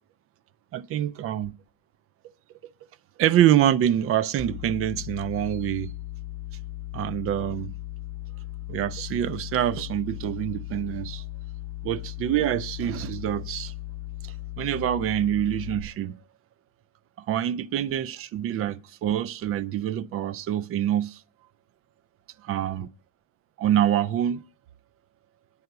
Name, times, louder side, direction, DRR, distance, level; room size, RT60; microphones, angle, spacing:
voice 1, 0.7-1.5 3.2-5.9 6.9-7.7 8.7-11.2 11.8-13.7 14.6-16.2 17.3-21.2 22.4-22.9 23.6-24.4, right 11 dB, 45° right, 0.5 m, -25 dB
sound 1, 4.4-15.8, left 15 dB, 15° right, 2.8 m, -37 dB
9.7 x 5.7 x 7.9 m
cardioid pair, 130°, 31 cm